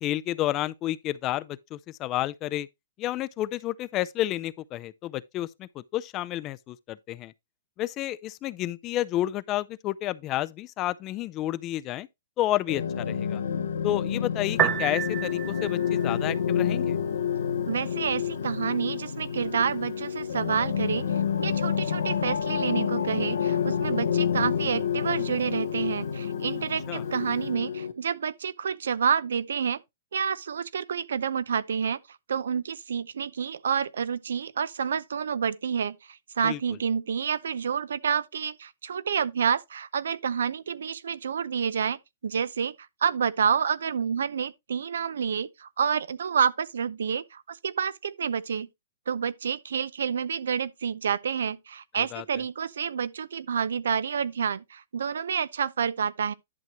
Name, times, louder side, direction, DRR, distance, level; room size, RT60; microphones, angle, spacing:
voice 1, 0.0-2.7 3.0-7.3 7.8-12.1 12.4-13.4 13.8-17.0 26.9-27.0 36.4-36.6 52.0-52.2, left 14 dB, 30° left, 0.4 m, -30 dB
sound 1, 12.7-27.9, left 7 dB, 85° left, 1.2 m, -29 dB
Piano, 14.5-27.5, right 10 dB, 25° right, 0.8 m, -37 dB
voice 2, 17.7-21.1 21.4-29.8 30.1-42.0 42.2-42.8 43.0-48.7 49.1-56.3, right 7 dB, 80° right, 0.6 m, -29 dB
11.0 x 6.0 x 3.0 m
hypercardioid pair, 140°, 0 cm